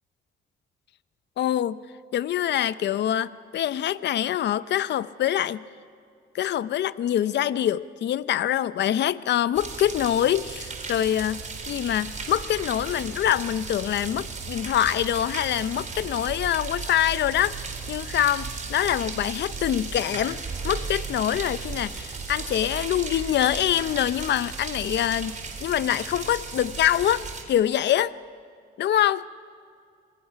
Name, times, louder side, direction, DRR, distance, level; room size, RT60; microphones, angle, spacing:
voice 1, 1.4-1.8 2.1-5.6 6.3-20.4 20.6-25.3 25.6-28.1 28.8-29.2, left 11 dB, 60° left, 16 dB, 0.6 m, -25 dB
sound 1, 9.5-27.4, right 4 dB, 40° right, 3.9 m, -35 dB
28.0 x 22.0 x 5.8 m, 2.3 s
cardioid pair, 90°, 20 cm